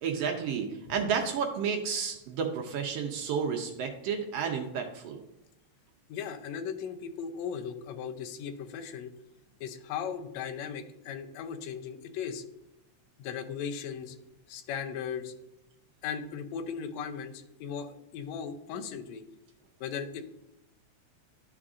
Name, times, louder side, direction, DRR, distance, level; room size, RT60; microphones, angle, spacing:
voice 1, 0.0-5.2, right 6 dB, 75° right, 3 dB, 1.4 m, -31 dB
voice 2, 6.1-9.1 9.6-12.4 13.2-14.2 14.5-15.3 16.0-19.2 19.8-20.2, left 7 dB, 75° left, 6 dB, 1.8 m, -37 dB
11.0 x 4.8 x 2.5 m, 0.90 s
omnidirectional pair, 3.3 m